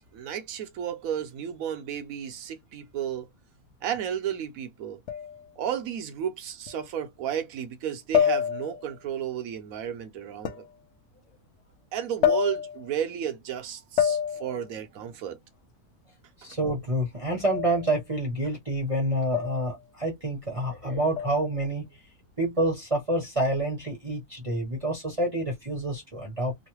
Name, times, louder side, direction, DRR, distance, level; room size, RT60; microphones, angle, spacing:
voice 1, 0.0-3.3 3.8-5.0 5.6-10.6 11.9-15.4, right 9 dB, 70° right, 1.1 m, -33 dB
sound 1, 5.1-5.5 6.7-6.8 8.1-8.9 10.5-10.7 12.2-12.9 14.0-14.6 17.4-17.9 19.3-19.8 21.2-21.6, left 9 dB, 65° left, 0.6 m, -27 dB
voice 2, 16.4-21.8 22.4-26.6, right 1 dB, 30° right, 0.8 m, -28 dB
3.1 x 2.1 x 3.0 m
omnidirectional pair, 1.6 m